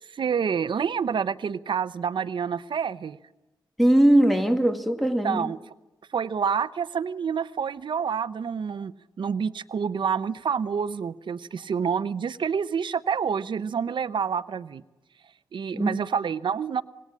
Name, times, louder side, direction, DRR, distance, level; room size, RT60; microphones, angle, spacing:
voice 1, 0.1-3.2 5.2-5.6 6.1-8.9 9.2-14.8 15.5-16.8, right 6 dB, 80° right, 0.8 m, -28 dB
voice 2, 3.8-5.5 15.7-16.0, right 1 dB, ahead, 2.2 m, -20 dB
26.5 x 19.5 x 8.7 m
wide cardioid pair, 130°, 8 cm